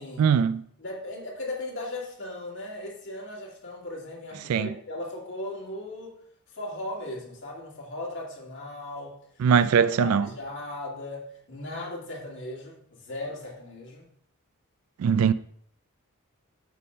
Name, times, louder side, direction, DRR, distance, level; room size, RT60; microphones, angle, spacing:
voice 1, 0.2-0.6 4.5-4.7 9.4-10.3 15.0-15.3, right 7 dB, 70° right, 0.3 m, -21 dB
voice 2, 0.8-6.1 6.5-9.2 9.5-9.6 10.0-14.1, left 1 dB, 60° left, 2.0 m, -37 dB
6.6 x 3.6 x 5.4 m
head